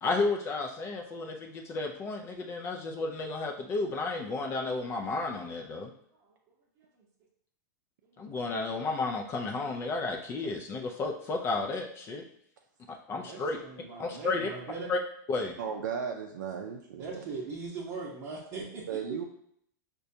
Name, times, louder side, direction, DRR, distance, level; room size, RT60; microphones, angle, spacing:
voice 1, 0.0-5.9 8.2-12.2 12.9-13.6 14.0-14.5 14.9-15.0 15.3-15.5, left 3 dB, 25° left, 2 dB, 0.4 m, -32 dB
voice 2, 13.1-14.9 17.0-18.9, right 4 dB, 40° right, -5 dB, 0.7 m, -40 dB
voice 3, 15.6-17.2 18.9-19.3, right 7 dB, 85° right, 1 dB, 0.4 m, -35 dB
4.8 x 2.2 x 2.6 m, 0.69 s
hypercardioid pair, 135°, 10 cm